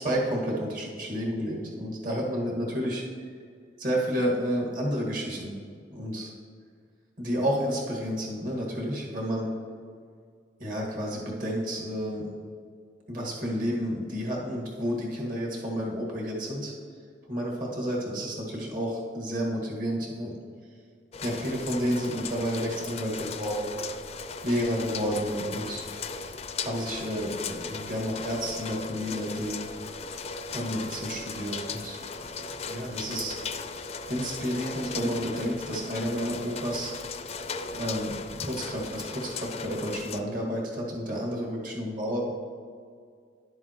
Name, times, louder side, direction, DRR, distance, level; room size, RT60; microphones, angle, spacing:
voice 1, 0.0-3.0 3.8-5.5 5.9-6.3 7.2-9.5 10.6-12.3 13.1-16.7 17.3-20.3 21.2-23.8 24.4-25.8 26.6-29.6 30.5-32.0 32.7-33.3 34.1-36.9 37.7-38.1 38.4-42.3, equal, 50° right, -3 dB, 1.7 m, -30 dB
sound 1, 21.1-40.2, left 4 dB, 35° left, 0.4 m, -37 dB
11.0 x 7.6 x 3.0 m, 2.1 s
head